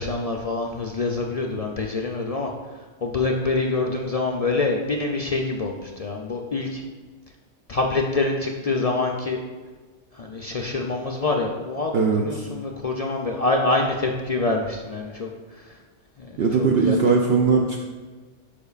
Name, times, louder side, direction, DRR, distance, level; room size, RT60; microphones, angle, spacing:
voice 1, 0.0-2.5 3.0-6.8 7.7-9.4 10.1-15.3 16.2-16.3 16.6-17.1, left 3 dB, 50° left, 0 dB, 0.4 m, -25 dB
voice 2, 11.9-12.4 16.4-17.8, right 5 dB, 65° right, 0 dB, 0.8 m, -20 dB
12.0 x 5.1 x 2.4 m, 1.3 s
omnidirectional pair, 1.2 m